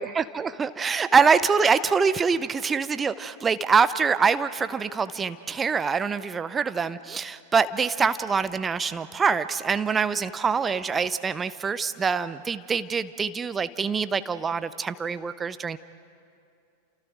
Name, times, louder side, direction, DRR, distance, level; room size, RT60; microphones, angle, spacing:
voice 1, 0.0-15.8, right 5 dB, 20° right, 14 dB, 0.7 m, -24 dB
29.5 x 28.0 x 5.0 m, 2.5 s
figure-of-eight pair, 90°, 0 cm